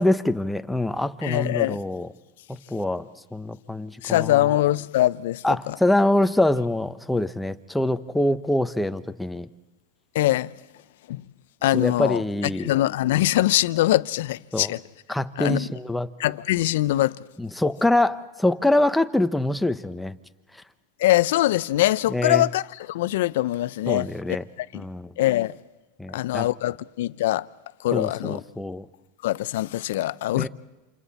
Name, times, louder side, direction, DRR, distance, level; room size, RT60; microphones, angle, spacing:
voice 1, 0.0-2.1 2.7-4.5 5.4-9.5 11.7-12.7 14.5-14.7 15.1-16.1 17.4-20.1 22.1-22.5 23.9-24.4 24.7-25.1 26.0-26.5 27.9-28.8 30.3-30.5, left 1 dB, 5° left, 1.1 m, -24 dB
voice 2, 1.2-1.8 4.0-5.8 10.1-10.5 11.1-11.2 11.6-12.2 12.6-14.8 15.4-15.7 16.2-17.2 21.0-24.1 24.6-24.8 25.2-25.6 26.1-27.5 27.8-28.4 29.2-30.5, left 15 dB, 75° left, 0.6 m, -23 dB
29.0 x 28.0 x 4.3 m
hypercardioid pair, 105°, 0 cm